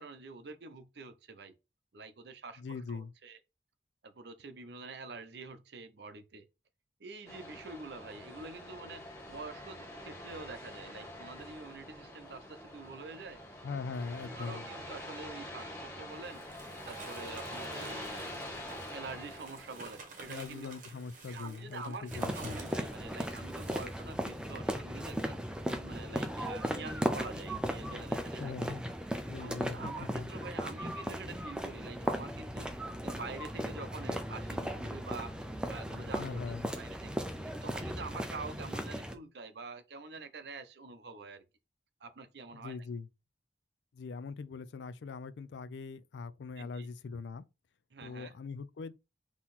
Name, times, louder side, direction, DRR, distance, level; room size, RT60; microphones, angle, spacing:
voice 1, 0.0-1.5 1.9-3.4 4.0-6.5 7.0-13.4 14.2-16.4 16.9-18.4 18.9-20.7 21.3-25.4 25.6-28.5 29.4-32.8 33.0-35.3 35.6-37.2 37.6-41.4 42.0-42.8 46.6-46.9 47.9-48.3, right 3 dB, 65° right, 0.6 m, -46 dB
voice 2, 2.6-3.1 13.6-14.6 20.3-22.6 28.4-28.8 29.3-30.3 36.2-36.7 42.5-43.1 43.9-47.4 48.0-48.9, left 4 dB, 75° left, 0.4 m, -41 dB
sound 1, 7.2-19.8, left 1 dB, 20° left, 1.6 m, -45 dB
sound 2, 16.0-24.7, right 3 dB, 45° right, 1.1 m, -51 dB
sound 3, 22.1-39.1, equal, 5° right, 0.5 m, -37 dB
3.9 x 2.9 x 4.1 m
head